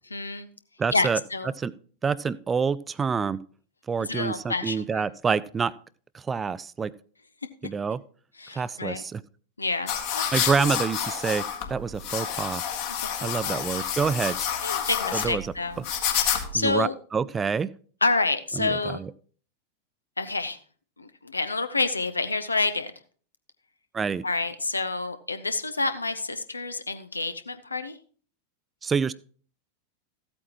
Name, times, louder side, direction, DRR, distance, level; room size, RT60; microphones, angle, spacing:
voice 1, 0.1-0.5 0.9-1.5 4.0-5.0 8.4-9.0 9.6-10.3 13.2-13.6 14.6-15.8 16.1-16.9 18.0-19.0 20.2-20.6 21.0-22.9 24.2-28.0, left 3 dB, 80° left, 10 dB, 0.7 m, -28 dB
voice 2, 0.8-1.7 2.0-3.4 3.9-5.7 6.1-6.9 7.6-8.0 8.5-9.2 10.3-11.4 11.7-12.6 13.2-14.5 15.1-15.9 16.5-17.7 18.6-19.1 23.9-24.2 28.8-29.1, right 5 dB, 15° right, 19 dB, 0.3 m, -27 dB
sound 1, 9.9-16.7, left 9 dB, 50° left, 1.6 m, -29 dB
14.5 x 8.5 x 3.0 m, 0.43 s
figure-of-eight pair, 90°, 0 cm